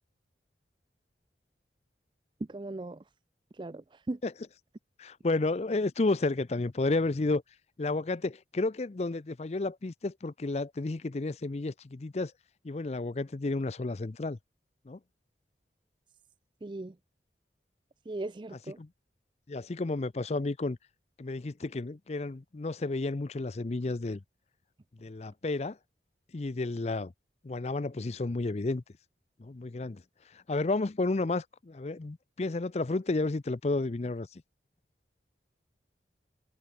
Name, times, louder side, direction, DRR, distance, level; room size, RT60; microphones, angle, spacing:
voice 1, 2.5-3.0 3.5-4.2 16.6-17.0 18.1-18.8, right 2 dB, 25° right, 0.4 m, -38 dB
voice 2, 5.0-7.4 7.8-12.3 12.6-14.4 14.9-15.0 18.8-18.9 19.5-20.8 21.2-24.2 25.0-25.8 26.3-27.1 27.4-28.8 29.4-30.0 30.5-34.3, left 2 dB, 35° left, 0.5 m, -31 dB
head